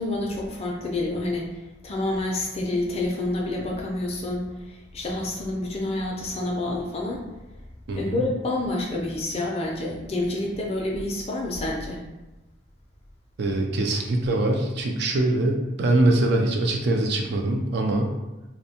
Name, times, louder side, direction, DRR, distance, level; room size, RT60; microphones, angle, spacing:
voice 1, 0.0-1.5 1.8-7.2 8.0-12.0, left 2 dB, 30° left, -2 dB, 0.4 m, -28 dB
voice 2, 7.9-8.2 13.4-18.1, right 2 dB, 55° right, 2 dB, 0.3 m, -23 dB
2.6 x 2.1 x 2.7 m, 1.0 s
head